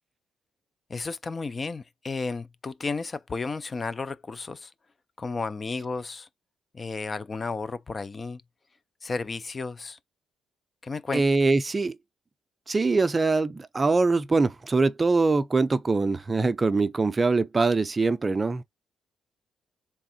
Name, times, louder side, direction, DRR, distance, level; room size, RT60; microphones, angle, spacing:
voice 1, 0.9-4.7 5.2-6.3 6.7-8.4 9.0-10.0 10.8-11.2, left 4 dB, 30° left, 0.3 m, -33 dB
voice 2, 11.1-12.0 12.7-18.6, right 3 dB, 25° right, 0.5 m, -23 dB
3.4 x 3.4 x 4.1 m
cardioid pair, 90°, 0 cm